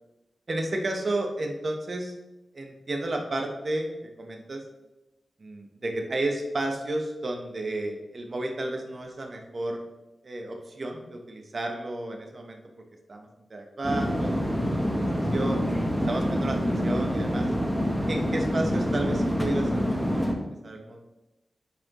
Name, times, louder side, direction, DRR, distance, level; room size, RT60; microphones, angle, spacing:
voice 1, 0.5-2.1 2.5-4.6 5.4-9.8 10.2-12.6 13.1-15.1 15.3-15.6 16.1-17.5 18.1-20.2 20.6-21.0, right 2 dB, 45° right, 2 dB, 1.0 m, -32 dB
sound 1, 13.8-20.3, equal, ahead, 1.0 m, -26 dB
9.4 x 4.4 x 3.0 m, 1.0 s
wide cardioid pair, 85°, 0 cm